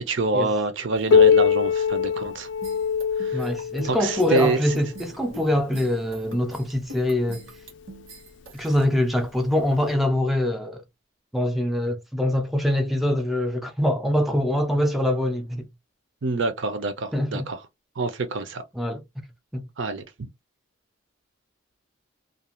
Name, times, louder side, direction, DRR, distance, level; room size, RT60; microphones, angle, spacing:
voice 1, 0.1-2.5 3.2-3.5 3.8-4.6 16.2-17.6 18.0-18.6 19.8-20.1, right 3 dB, 65° right, 0.6 m, -26 dB
Piano, 1.1-6.4 7.3-7.4 7.9-8.0 8.8-8.9 9.9-10.0, left 6 dB, 60° left, 0.4 m, -23 dB
sound 1, 2.6-8.8, equal, 90° right, 1.2 m, -43 dB
voice 2, 3.3-7.4 8.5-10.8 11.3-15.6 17.1-17.5 18.7-19.0 19.5-19.6, left 1 dB, ahead, 0.4 m, -24 dB
2.5 x 2.3 x 2.9 m
head